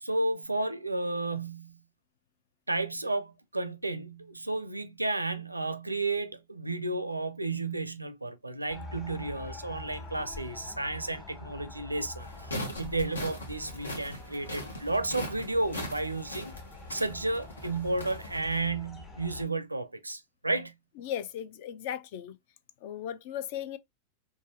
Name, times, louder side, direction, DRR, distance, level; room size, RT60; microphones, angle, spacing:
voice 1, 0.0-1.8 2.7-16.5 16.9-20.7, right 2 dB, 85° right, 0.4 m, -32 dB
sound 1, 8.7-19.4, left 2 dB, 20° left, 1.4 m, -45 dB
sound 2, 12.2-18.7, left 1 dB, 75° left, 1.1 m, -41 dB
voice 2, 21.0-22.4 22.8-23.8, left 10 dB, 50° left, 0.5 m, -37 dB
4.7 x 2.7 x 2.6 m
figure-of-eight pair, 90°, 0 cm